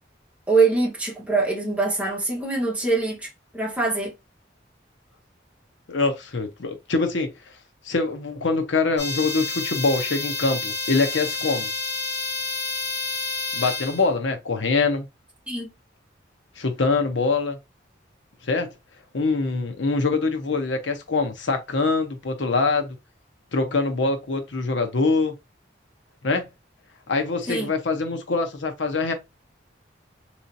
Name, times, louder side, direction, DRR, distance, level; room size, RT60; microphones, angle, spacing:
voice 1, 0.5-4.1 15.5-15.7 27.5-27.7, right 3 dB, 5° right, 1.1 m, -23 dB
voice 2, 5.9-7.5 7.8-11.7 13.5-15.1 16.6-17.6 18.4-18.7 19.1-23.0 23.5-25.3 26.2-26.5 27.1-29.1, left 3 dB, 85° left, 0.8 m, -24 dB
sound 1, 9.0-14.1, left 3 dB, 65° left, 1.8 m, -29 dB
3.9 x 3.0 x 2.6 m
head